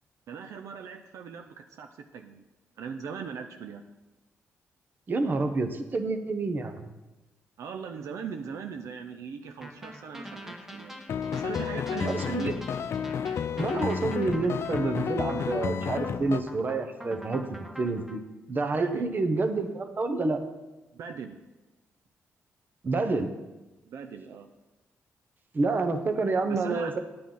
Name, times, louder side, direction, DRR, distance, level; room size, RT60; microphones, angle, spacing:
voice 1, 0.3-2.4 2.8-3.9 7.6-11.0 11.3-12.6 18.8-19.1 20.9-21.4 23.9-24.5 26.5-27.0, right 6 dB, 75° right, 6 dB, 0.6 m, -39 dB
voice 2, 5.1-6.9 12.0-12.4 13.6-17.4 17.8-18.2 18.5-20.4 22.8-23.3 25.5-27.0, right 3 dB, 40° right, 8 dB, 0.9 m, -28 dB
sound 1, 9.6-18.2, equal, 5° right, 1.2 m, -44 dB
sound 2, 11.1-16.4, left 7 dB, 60° left, 0.4 m, -31 dB
9.4 x 8.6 x 3.9 m, 1.1 s
cardioid pair, 90°, 5 cm